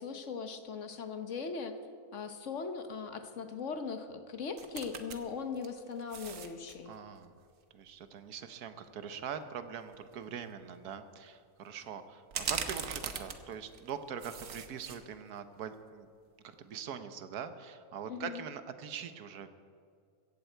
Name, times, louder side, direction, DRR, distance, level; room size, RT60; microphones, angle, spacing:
voice 1, 0.0-1.7 2.1-6.9 18.1-18.4, left 5 dB, 55° left, 8 dB, 1.2 m, -39 dB
sound 1, 4.6-5.2 5.6-6.8 9.4-9.5 9.9-10.1 12.3-13.9 14.2-15.0 15.4-15.5, right 7 dB, 60° right, 1.3 m, -39 dB
voice 2, 6.8-7.3 7.7-16.1 16.4-19.5, right 7 dB, 85° right, 10 dB, 1.4 m, -43 dB
16.0 x 15.0 x 4.5 m, 2.3 s
omnidirectional pair, 1.6 m